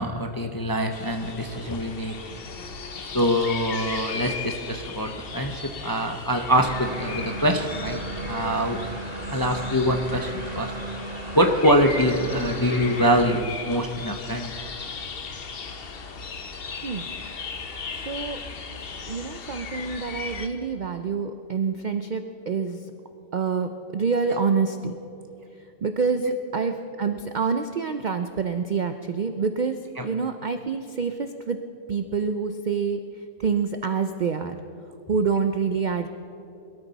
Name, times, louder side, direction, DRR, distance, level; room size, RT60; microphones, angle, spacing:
voice 1, 0.0-2.1 3.1-8.0 8.3-8.8 9.3-10.7 11.3-14.5 24.3-24.4 26.2-26.3 30.0-30.1, equal, 30° left, 4 dB, 0.4 m, -24 dB
sound 1, 0.9-20.5, left 5 dB, 45° left, 1.0 m, -37 dB
sound 2, 6.5-13.3, right 2 dB, 30° right, 1.1 m, -35 dB
voice 2, 18.1-18.4 19.1-22.8 23.3-24.9 25.8-26.2 26.5-26.7 27.0-31.6 31.9-33.0 33.4-34.6 35.1-36.1, right 5 dB, 75° right, 8 dB, 0.4 m, -26 dB
21.5 x 13.0 x 4.1 m, 2.7 s
omnidirectional pair, 1.5 m